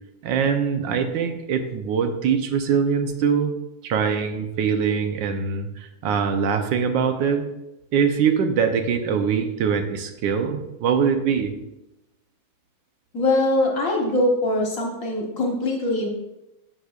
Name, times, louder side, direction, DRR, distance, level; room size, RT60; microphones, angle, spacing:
voice 1, 0.2-3.5 3.8-7.5 7.9-11.5, right 6 dB, 70° right, 7 dB, 1.4 m, -23 dB
voice 2, 13.1-16.1, left 1 dB, 45° left, -1 dB, 1.5 m, -22 dB
11.5 x 6.3 x 2.4 m, 0.95 s
omnidirectional pair, 2.1 m